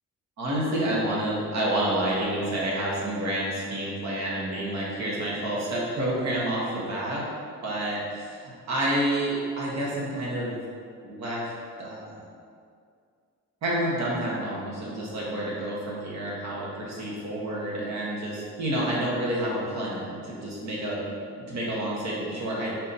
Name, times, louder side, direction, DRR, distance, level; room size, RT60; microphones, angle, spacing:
voice 1, 0.4-7.3 7.6-10.6 11.0-11.5 11.8-12.2 13.6-21.1 21.3-22.7, right 1 dB, 65° right, -5 dB, 1.3 m, -29 dB
4.1 x 2.8 x 4.1 m, 2.2 s
cardioid pair, 90°, 30 cm